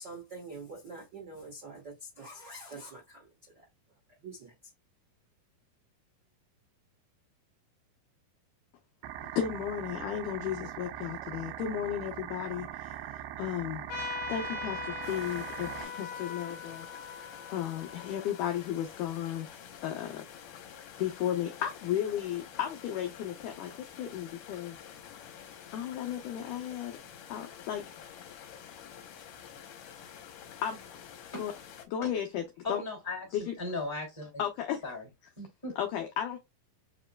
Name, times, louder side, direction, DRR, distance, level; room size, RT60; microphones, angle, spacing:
voice 1, 0.0-3.7 4.2-4.5, right 2 dB, 70° right, 1.0 m, -45 dB
sound 1, 9.0-15.8, right 12 dB, 90° right, 2.5 m, -41 dB
voice 2, 9.3-13.9 14.3-16.9 17.5-19.5 19.8-20.2 21.0-24.8 25.7-27.0 27.3-28.1 30.6-30.8 31.4-31.5 31.9-32.8 33.3-33.5 34.4-34.8 35.8-36.4, left 10 dB, 85° left, 1.8 m, -34 dB
Trumpet, 13.9-19.0, left 5 dB, 50° left, 2.4 m, -41 dB
sound 2, 15.0-31.9, left 8 dB, 70° left, 2.3 m, -49 dB
voice 3, 32.6-33.2 33.6-34.3 34.8-35.0 35.4-35.7, left 2 dB, 10° left, 1.5 m, -36 dB
7.3 x 2.9 x 2.2 m
omnidirectional pair, 4.4 m